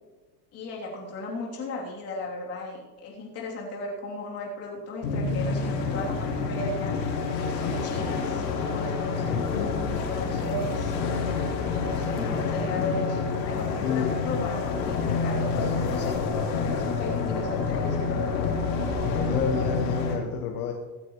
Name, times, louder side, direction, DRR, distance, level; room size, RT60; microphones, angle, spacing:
voice 1, 0.5-7.0 7.5-9.4 9.9-10.9 11.8-16.2 16.5-18.2, left 2 dB, 30° left, -3 dB, 3.3 m, -36 dB
sound 1, 5.0-20.2, left 4 dB, 85° left, 4.2 m, -28 dB
voice 2, 9.2-9.8 13.8-14.2 19.0-20.7, left 7 dB, 65° left, 1 dB, 1.7 m, -30 dB
25.0 x 9.4 x 3.2 m, 1.3 s
supercardioid pair, 160°, 48 cm